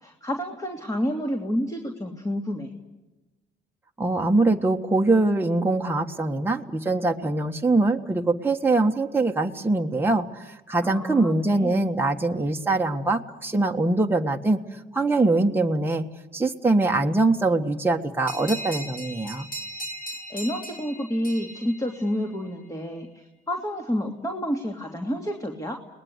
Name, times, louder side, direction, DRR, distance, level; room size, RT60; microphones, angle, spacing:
voice 1, 0.0-2.7 10.8-11.8 20.3-25.8, equal, 15° left, 3 dB, 3.1 m, -29 dB
voice 2, 4.0-14.6 14.9-16.0 16.3-19.5, right 2 dB, 10° right, 1 dB, 1.6 m, -23 dB
sound 1, 18.3-22.5, equal, 45° left, 5.5 m, -38 dB
30.0 x 20.5 x 8.2 m, 1.1 s
cardioid pair, 90°, 20 cm